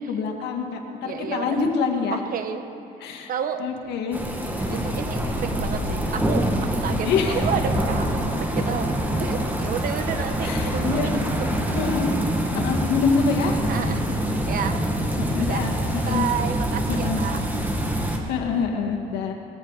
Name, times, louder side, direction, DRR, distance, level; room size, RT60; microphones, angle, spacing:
voice 1, 0.1-2.2 3.0-3.3 3.6-4.2 4.6-4.7 7.0-7.4 10.4-11.2 11.7-12.1 12.5-13.6 15.2-16.2 16.9-17.2 18.3-19.3, left 5 dB, 80° left, 1 dB, 2.1 m, -26 dB
voice 2, 1.0-1.6 2.3-2.7 3.3-3.6 4.7-6.4 6.8-8.9 9.2-11.8 13.7-14.0 14.5-14.8 15.4-15.7 16.0-17.4, right 8 dB, 55° right, 8 dB, 1.3 m, -30 dB
sound 1, 4.1-18.2, right 1 dB, 10° right, 2.1 m, -25 dB
22.5 x 14.0 x 4.2 m, 2.6 s
cardioid pair, 110°, 17 cm